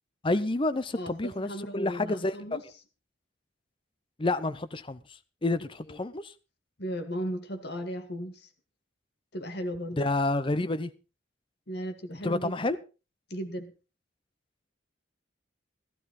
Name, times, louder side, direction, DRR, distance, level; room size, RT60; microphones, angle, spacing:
voice 1, 0.2-2.6 4.2-6.3 10.0-10.9 12.2-12.8, left 2 dB, 25° left, 0.6 m, -29 dB
voice 2, 0.9-2.6 5.9-6.0 6.8-8.5 9.3-10.0 11.7-12.7 13.3-13.7, equal, 55° left, 1.8 m, -36 dB
15.5 x 12.5 x 4.1 m
head